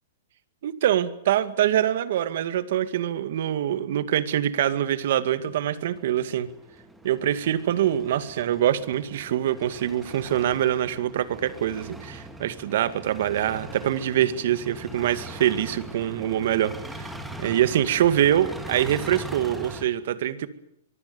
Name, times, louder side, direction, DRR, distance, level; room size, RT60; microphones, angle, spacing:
voice 1, 0.6-6.5 7.0-17.1 17.4-20.5, right 11 dB, 55° right, 13 dB, 2.1 m, -24 dB
sound 1, 5.4-19.8, right 1 dB, ahead, 2.2 m, -41 dB
24.5 x 23.5 x 7.1 m, 0.74 s
supercardioid pair, 170°, 0 cm